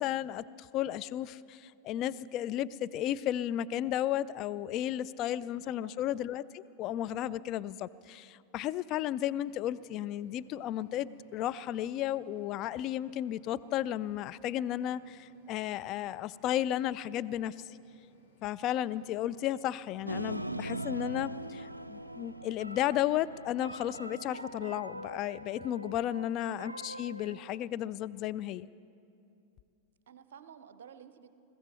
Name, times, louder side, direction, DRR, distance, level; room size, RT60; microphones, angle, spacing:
voice 1, 0.0-17.5 18.4-28.7, left 12 dB, 35° left, 15 dB, 0.3 m, -34 dB
sound 1, 9.4-22.3, left 3 dB, 60° left, 2.3 m, -67 dB
Dramatic piano, 20.1-27.6, right 1 dB, 85° right, 0.3 m, -41 dB
voice 2, 30.1-31.3, right 8 dB, 60° right, 12 dB, 0.7 m, -53 dB
21.5 x 15.0 x 4.3 m, 2.6 s
figure-of-eight pair, 90°, 0 cm